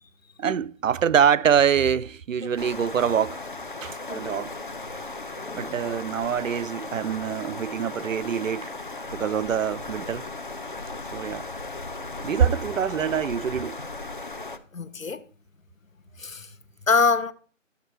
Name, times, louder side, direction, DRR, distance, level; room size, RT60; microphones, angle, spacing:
voice 1, 0.4-3.4 3.8-4.5 5.5-8.7 9.1-10.2 11.1-11.4 12.2-13.8, right 8 dB, 75° right, 0.5 m, -24 dB
sound 1, 2.6-14.6, left 2 dB, 40° left, 0.6 m, -36 dB
voice 2, 4.1-4.4 5.4-5.7 14.7-15.2 16.2-16.5 16.9-17.3, left 4 dB, 80° left, 1.0 m, -25 dB
11.5 x 8.1 x 3.1 m
figure-of-eight pair, 165°, 39 cm